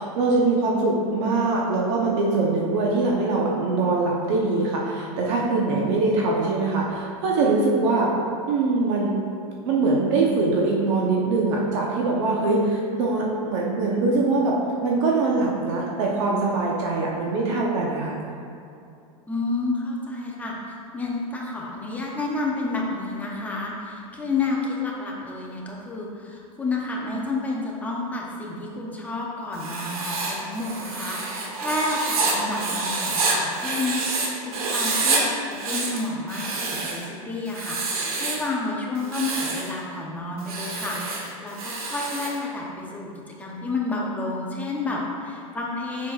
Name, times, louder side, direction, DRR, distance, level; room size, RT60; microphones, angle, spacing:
voice 1, 0.0-8.1 8.5-9.1 9.7-18.1, right 3 dB, 55° right, -2 dB, 0.9 m, -23 dB
voice 2, 19.3-20.5 20.9-43.1 43.4-46.1, left 3 dB, 10° left, -3 dB, 0.7 m, -30 dB
Writing, 29.5-34.3 34.5-35.2 35.5-37.0 37.5-38.5 39.0-39.7 40.4-42.4, right 3 dB, 90° right, 1.2 m, -27 dB
7.5 x 5.8 x 2.4 m, 2.5 s
supercardioid pair, 150°, 18 cm